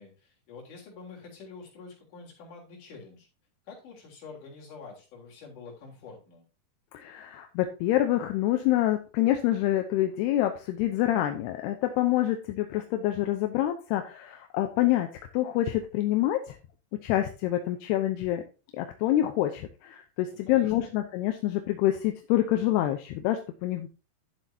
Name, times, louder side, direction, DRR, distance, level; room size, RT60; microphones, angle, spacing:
voice 1, 0.0-3.3 3.7-6.4 20.3-20.9, left 4 dB, 50° left, -3 dB, 4.7 m, -47 dB
voice 2, 6.9-15.1 15.3-16.6 17.0-18.4 18.7-23.9, left 13 dB, 80° left, 5 dB, 2.8 m, -26 dB
12.0 x 7.4 x 2.8 m, 0.32 s
omnidirectional pair, 4.7 m